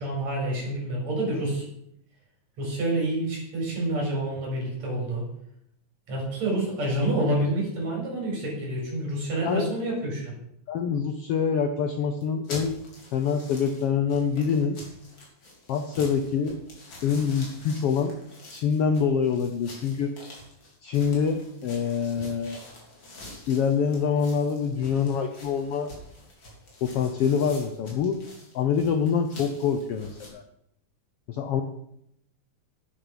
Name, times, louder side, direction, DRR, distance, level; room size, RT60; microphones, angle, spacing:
voice 1, 0.0-1.6 2.6-5.2 6.1-10.3, right 1 dB, 60° right, -3 dB, 6.4 m, -28 dB
voice 2, 9.4-9.8 10.7-12.8 13.1-14.8 15.7-16.6 17.0-18.1 18.5-20.1 20.8-22.6 23.5-25.9 26.8-28.2 28.5-30.4 31.3-31.6, left 6 dB, 75° left, 6 dB, 1.3 m, -25 dB
sound 1, 12.2-30.3, left 1 dB, 35° left, 3.7 m, -46 dB
11.0 x 9.1 x 5.5 m, 0.75 s
omnidirectional pair, 3.6 m